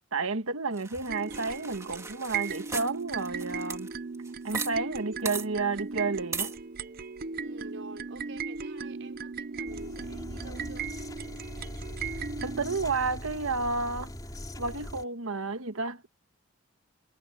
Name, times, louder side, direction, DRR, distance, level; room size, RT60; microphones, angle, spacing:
voice 1, 0.1-3.9 4.4-6.5 12.4-14.1 14.6-16.1, right 3 dB, 80° right, 1.5 m, -31 dB
sound 1, 0.8-4.7 5.0-5.1 5.3-5.5 6.3-6.6, right 4 dB, 15° right, 2.6 m, -38 dB
sound 2, 1.1-12.8, right 5 dB, 45° right, 0.6 m, -37 dB
voice 2, 7.4-10.9, right 2 dB, 65° right, 5.6 m, -47 dB
sound 3, 9.6-15.0, equal, 15° left, 4.7 m, -41 dB
head